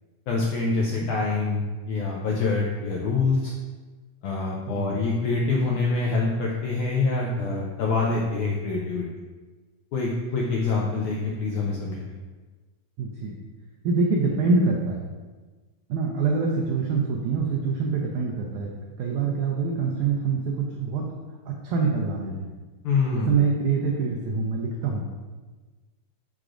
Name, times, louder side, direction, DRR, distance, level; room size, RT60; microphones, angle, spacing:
voice 1, 0.3-3.5 4.2-9.0 9.9-12.1 22.8-23.3, left 3 dB, 80° left, -2 dB, 1.7 m, -25 dB
voice 2, 4.7-5.0 13.0-13.3 13.8-15.0 15.9-18.7 19.0-21.1 21.5-22.5 23.1-25.0, right 4 dB, 90° right, -1 dB, 1.7 m, -25 dB
6.6 x 6.0 x 2.5 m, 1.3 s
omnidirectional pair, 4.2 m